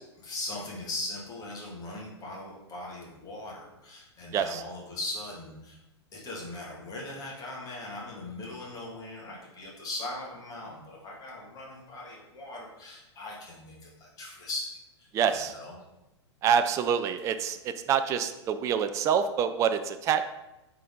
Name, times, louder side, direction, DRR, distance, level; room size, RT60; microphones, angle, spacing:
voice 1, 0.2-5.8 6.1-14.7 15.0-15.8, left 2 dB, 25° left, -3 dB, 2.0 m, -39 dB
voice 2, 15.1-15.5 16.4-17.6 17.9-20.3, right 8 dB, 20° right, 10 dB, 0.4 m, -26 dB
9.1 x 3.9 x 3.7 m, 0.97 s
figure-of-eight pair, 105°, 15 cm